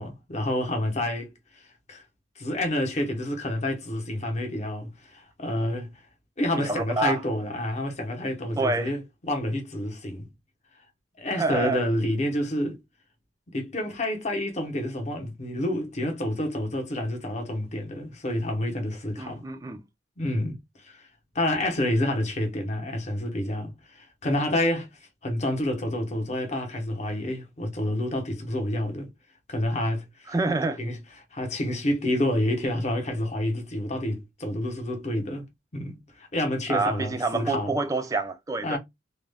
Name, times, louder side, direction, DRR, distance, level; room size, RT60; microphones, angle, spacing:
voice 1, 0.0-2.0 2.4-6.0 6.4-10.3 11.2-12.8 13.5-19.4 20.2-21.1 21.3-24.9 25.2-29.1 29.5-30.3 30.8-31.0 31.3-35.5 35.7-37.7 38.6-38.8, left 1 dB, 35° left, 0.8 m, -29 dB
voice 2, 6.6-7.2 8.6-8.9 11.4-11.8 19.2-19.8 30.3-30.8 36.7-38.8, right 3 dB, 15° right, 0.3 m, -27 dB
2.4 x 2.1 x 3.3 m
head